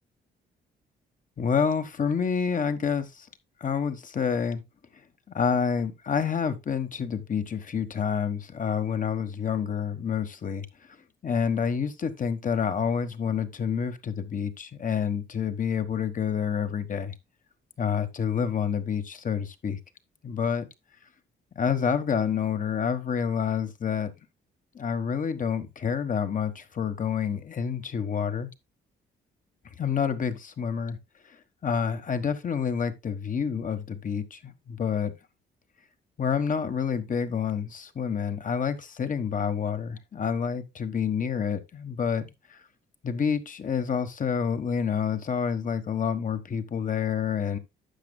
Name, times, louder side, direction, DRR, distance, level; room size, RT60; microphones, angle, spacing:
voice 1, 1.4-3.3 3.6-4.6 5.3-10.7 11.2-17.1 17.8-19.8 20.2-20.7 21.6-24.1 24.7-28.5 29.8-31.0 31.6-35.1 36.2-42.2 42.5-42.6 43.0-47.6, left 7 dB, 40° left, 1.3 m, -28 dB
11.5 x 7.7 x 2.2 m
cardioid pair, 90°, 20 cm